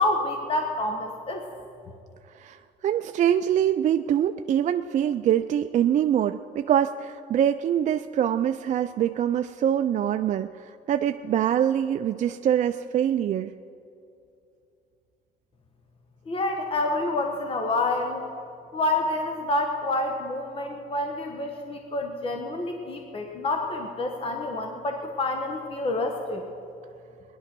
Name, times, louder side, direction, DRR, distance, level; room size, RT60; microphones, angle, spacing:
voice 1, 0.0-1.4 16.3-18.2 18.7-26.4, left 2 dB, 35° left, 3 dB, 1.3 m, -28 dB
voice 2, 2.3-13.5, right 10 dB, 45° right, 8 dB, 0.4 m, -24 dB
19.5 x 11.0 x 6.1 m, 2.5 s
cardioid pair, 110°, 17 cm